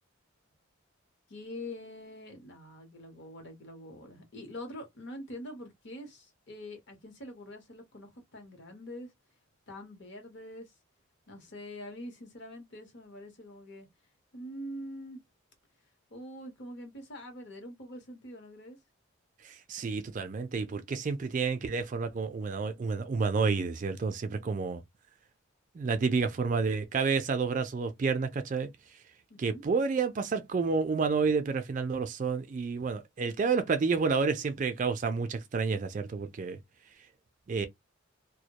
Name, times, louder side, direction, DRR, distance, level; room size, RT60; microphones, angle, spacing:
voice 1, 1.3-9.1 9.7-10.7 11.3-13.9 14.3-15.2 16.1-18.8 29.3-29.6, left 1 dB, 55° left, 0.8 m, -44 dB
voice 2, 19.4-24.8 25.7-28.7 29.4-36.6 37.5-37.7, right 4 dB, 35° right, 0.3 m, -30 dB
2.2 x 2.1 x 2.8 m
head